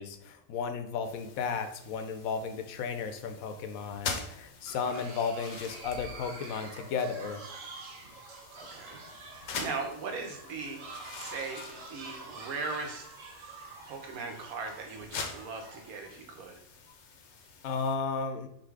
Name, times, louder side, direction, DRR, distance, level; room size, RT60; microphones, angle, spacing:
voice 1, 0.0-7.4 17.6-18.5, left 5 dB, 80° left, 7 dB, 1.0 m, -34 dB
sound 1, 1.0-17.9, left 5 dB, 60° left, 0.9 m, -45 dB
sound 2, 4.7-16.0, right 3 dB, 70° right, 1.1 m, -47 dB
voice 2, 8.5-9.0 9.3-10.8 11.2-13.0 13.9-16.5, right 4 dB, 85° right, 3 dB, 1.3 m, -39 dB
3.8 x 2.7 x 4.6 m, 0.77 s
omnidirectional pair, 1.5 m